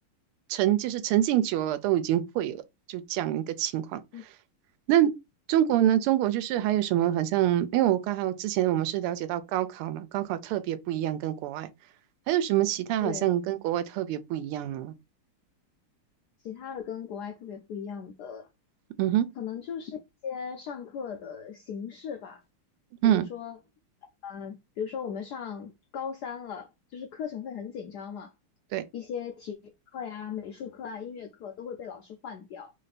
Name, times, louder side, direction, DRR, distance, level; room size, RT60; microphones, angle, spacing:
voice 1, 0.5-2.6 2.9-4.0 4.9-5.1 5.5-11.7 12.3-14.9 19.0-19.3 23.0-23.3 28.7-28.8, right 12 dB, 90° right, 1.5 m, -26 dB
voice 2, 16.4-18.5 19.4-20.0 20.2-22.4 23.0-23.6 24.2-28.3 28.9-32.7, left 7 dB, 85° left, 0.9 m, -38 dB
3.5 x 3.3 x 4.0 m
omnidirectional pair, 2.4 m